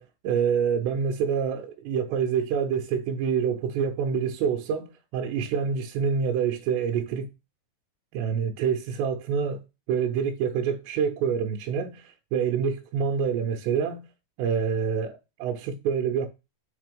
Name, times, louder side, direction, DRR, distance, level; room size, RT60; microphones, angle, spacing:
voice 1, 0.0-7.3 8.1-9.6 9.9-14.0 14.4-16.3, right 7 dB, 85° right, 2.9 m, -27 dB
6.6 x 3.7 x 5.1 m
omnidirectional pair, 5.0 m